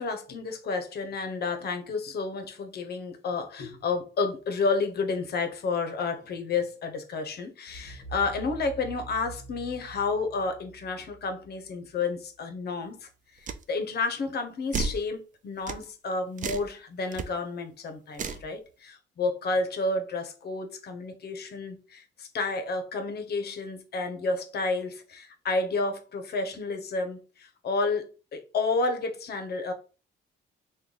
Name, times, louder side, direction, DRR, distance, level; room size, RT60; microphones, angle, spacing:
voice 1, 0.0-13.0 13.4-29.7, left 3 dB, 55° left, 0.7 m, -31 dB
sound 1, 7.7-12.5, right 3 dB, 25° left, 1.0 m, -45 dB
sound 2, 13.5-13.6 14.7-15.0 15.7-15.8 16.4-16.7 17.1-17.3 18.1-18.5, right 5 dB, 40° right, 0.4 m, -32 dB
3.1 x 2.2 x 3.7 m
cardioid pair, 90°, 20 cm